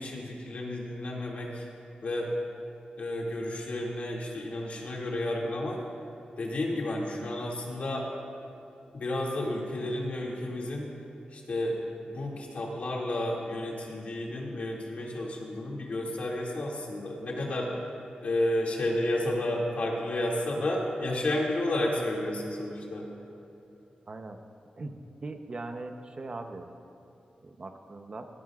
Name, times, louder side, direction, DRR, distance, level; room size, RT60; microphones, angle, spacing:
voice 1, 0.0-1.6 2.0-2.3 3.0-5.8 6.4-8.1 8.9-10.9 11.3-11.8 12.1-17.7 18.2-23.1, left 1 dB, 60° left, -3 dB, 2.3 m, -31 dB
voice 2, 24.1-24.4 24.8-25.0 25.2-26.7 27.4-28.2, right 2 dB, 40° right, 5 dB, 0.8 m, -40 dB
18.0 x 18.0 x 2.4 m, 2.9 s
wide cardioid pair, 140°, 3 cm